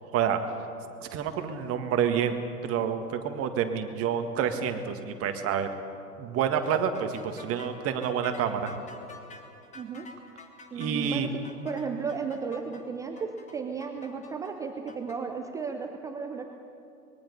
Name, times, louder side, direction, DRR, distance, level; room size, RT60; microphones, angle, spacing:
voice 1, 1.1-5.7 6.2-8.8 10.7-11.3, right 8 dB, 30° right, 7 dB, 1.8 m, -28 dB
sound 1, 6.6-15.2, left 3 dB, 15° left, 2.0 m, -48 dB
voice 2, 9.7-10.1 10.7-16.5, right 5 dB, 10° right, 4 dB, 0.4 m, -34 dB
24.5 x 21.5 x 5.5 m, 2.7 s
figure-of-eight pair, 95°, 46 cm